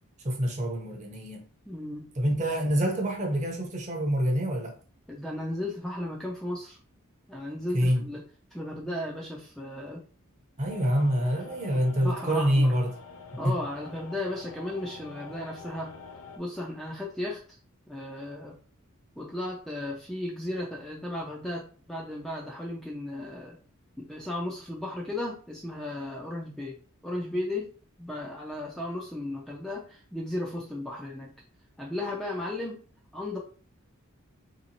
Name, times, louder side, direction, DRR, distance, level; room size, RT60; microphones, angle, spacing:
voice 1, 0.2-1.4 2.2-4.7 7.7-8.1 10.6-12.9 13.4-13.6, equal, 30° right, 0.7 m, -26 dB
voice 2, 1.7-2.1 5.1-6.8 7.3-8.2 8.5-10.0 11.7-12.7 13.4-15.9 16.4-17.4 17.9-18.6 19.2-23.6 24.0-27.7 28.0-31.3 31.8-32.8 33.1-33.4, left 1 dB, ahead, 0.4 m, -35 dB
sound 1, 10.7-16.4, left 5 dB, 85° left, 0.5 m, -46 dB
3.0 x 2.9 x 2.8 m
head